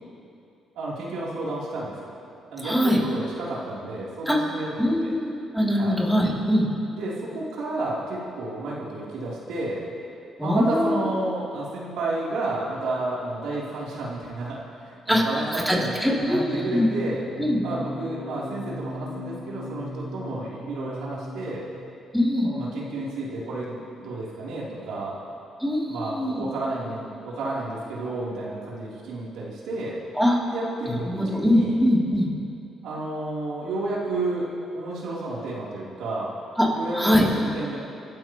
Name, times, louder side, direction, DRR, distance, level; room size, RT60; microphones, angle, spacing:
voice 1, 0.7-2.1 2.5-5.1 5.8-6.0 6.9-9.8 10.4-17.2 17.6-21.7 22.4-25.1 25.9-30.0 30.5-31.7 32.8-34.5 34.7-36.3 36.7-37.8, right 2 dB, 85° right, -6 dB, 3.4 m, -31 dB
voice 2, 2.6-3.0 4.3-4.4 4.8-6.7 10.4-11.0 15.1-16.9 17.4-17.6 22.1-22.5 25.6-26.3 30.1-30.4 30.8-32.3 36.6-36.7 36.9-37.3, equal, ahead, -5 dB, 3.1 m, -22 dB
sound 1, 16.2-21.9, left 1 dB, 80° left, 2.7 m, -38 dB
29.5 x 12.5 x 3.1 m, 2.6 s
cardioid pair, 90°, 0 cm